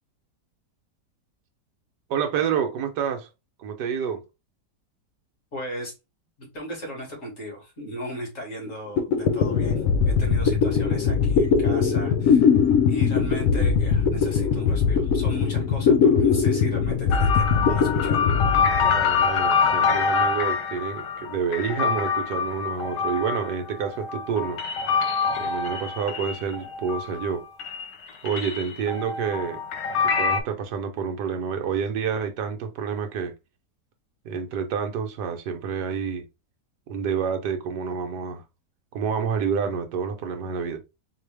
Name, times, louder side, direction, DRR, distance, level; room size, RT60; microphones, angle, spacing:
voice 1, 2.1-3.3 3.6-4.2 18.8-24.6 25.3-27.4 28.2-29.6 30.0-33.3 34.2-36.3 36.9-38.4 38.9-40.8, right 6 dB, 75° right, 1.3 m, -28 dB
voice 2, 5.5-5.9 6.4-12.5 12.9-18.3, equal, 45° left, 2.2 m, -37 dB
sound 1, 8.7-8.8 9.0-19.4, left 6 dB, 70° left, 0.8 m, -21 dB
sound 2, 17.1-27.3 27.6-30.4, left 5 dB, 85° left, 1.4 m, -25 dB
4.0 x 2.9 x 3.2 m
omnidirectional pair, 1.8 m